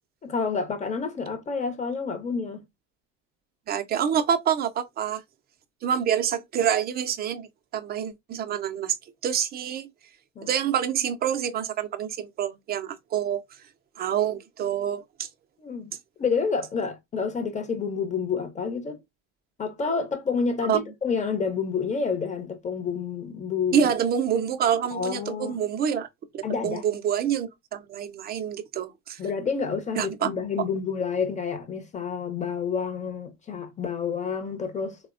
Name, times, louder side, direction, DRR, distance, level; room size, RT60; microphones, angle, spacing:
voice 1, 0.2-2.6 10.4-10.5 15.6-15.9 16.2-19.0 19.6-23.9 24.9-25.6 26.4-26.8 29.2-35.0, left 5 dB, 20° left, 0.6 m, -29 dB
voice 2, 3.7-5.2 5.8-7.5 7.7-9.0 9.2-9.9 10.4-13.4 14.0-15.3 20.6-20.8 23.7-26.1 26.3-29.2 30.0-30.3, right 9 dB, 25° right, 0.4 m, -27 dB
3.2 x 2.1 x 2.4 m
supercardioid pair, 105°, 37 cm